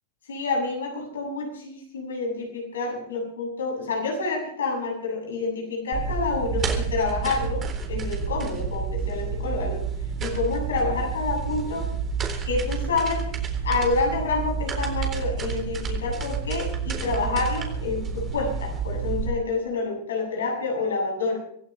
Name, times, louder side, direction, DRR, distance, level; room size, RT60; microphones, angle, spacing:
voice 1, 0.3-7.6 7.9-9.8 10.2-11.9 12.5-13.2 13.6-21.4, left 3 dB, 80° left, 0 dB, 7.9 m, -28 dB
sound 1, 5.9-19.3, right 6 dB, 30° right, 3.9 m, -29 dB
25.0 x 15.0 x 3.4 m, 0.63 s
hypercardioid pair, 95°, 0 cm